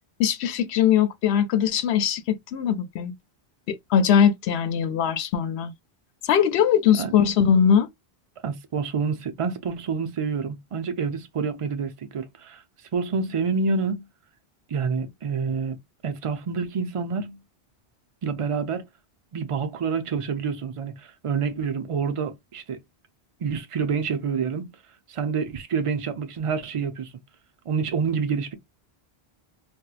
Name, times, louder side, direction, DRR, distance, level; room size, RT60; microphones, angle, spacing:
voice 1, 0.2-3.1 3.7-5.7 6.2-7.9, left 8 dB, 90° left, 0.9 m, -21 dB
voice 2, 8.4-12.6 12.9-14.0 14.7-15.8 16.0-17.4 18.2-18.8 19.3-22.8 23.4-24.7 25.1-27.1 27.7-28.5, right 5 dB, 40° right, 0.5 m, -27 dB
4.2 x 2.1 x 2.4 m
omnidirectional pair, 1.1 m